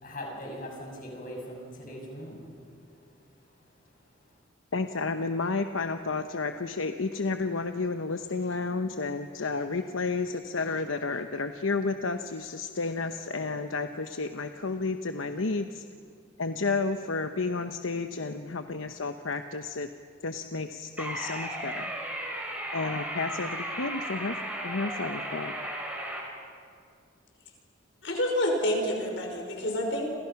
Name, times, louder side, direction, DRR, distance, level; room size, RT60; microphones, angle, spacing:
voice 1, 0.0-2.4, equal, 40° left, 0 dB, 7.0 m, -40 dB
voice 2, 4.7-15.8 16.4-19.9 20.2-21.9 22.7-24.4 24.6-25.5, left 3 dB, 80° left, 8 dB, 0.9 m, -31 dB
sound 1, 21.0-26.2, right 1 dB, 5° right, 4.5 m, -35 dB
voice 3, 28.0-30.1, equal, 60° left, 2 dB, 5.4 m, -28 dB
29.5 x 27.5 x 5.9 m, 2.4 s
head